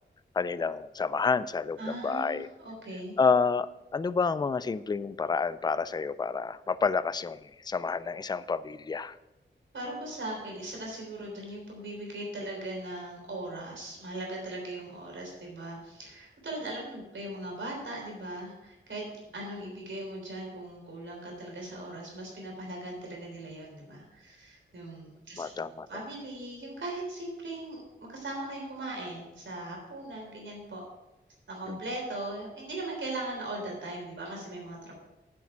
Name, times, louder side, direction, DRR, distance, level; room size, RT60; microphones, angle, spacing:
voice 1, 0.4-2.5 3.2-9.1 25.4-25.9 31.7-31.8, left 5 dB, 20° left, 15 dB, 0.3 m, -29 dB
voice 2, 1.8-3.2 9.7-27.8 28.1-30.8 31.5-34.9, right 1 dB, 75° right, -1 dB, 3.5 m, -39 dB
8.5 x 7.3 x 5.8 m, 0.97 s
wide cardioid pair, 100°, 20 cm